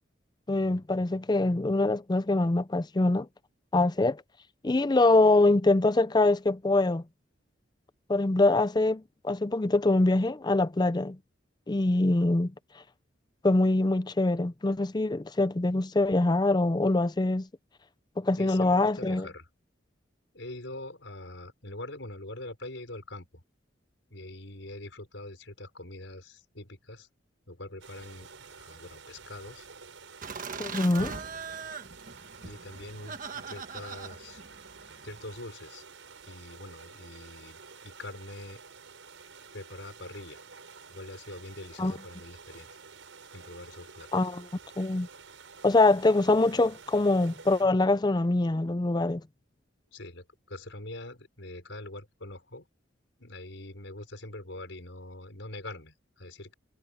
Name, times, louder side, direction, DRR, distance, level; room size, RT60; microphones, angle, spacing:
voice 1, 0.5-3.3 3.7-4.2 4.6-7.0 8.1-11.2 11.7-12.5 13.4-17.5 18.2-19.3 30.6-31.1 41.8-41.9 44.1-44.5 44.8-45.1 45.6-49.2, left 2 dB, 20° left, 0.5 m, -24 dB
voice 2, 18.3-19.5 20.3-23.4 24.1-27.1 27.5-28.3 28.6-29.7 32.4-34.4 35.0-35.8 36.3-38.6 39.5-40.5 40.9-42.7 43.3-44.1 49.9-52.7 53.2-56.5, left 2 dB, 75° left, 5.2 m, -43 dB
sound 1, 27.8-47.6, right 5 dB, 85° right, 5.2 m, -50 dB
Laughter, 30.2-35.4, right 5 dB, 45° right, 1.3 m, -41 dB
head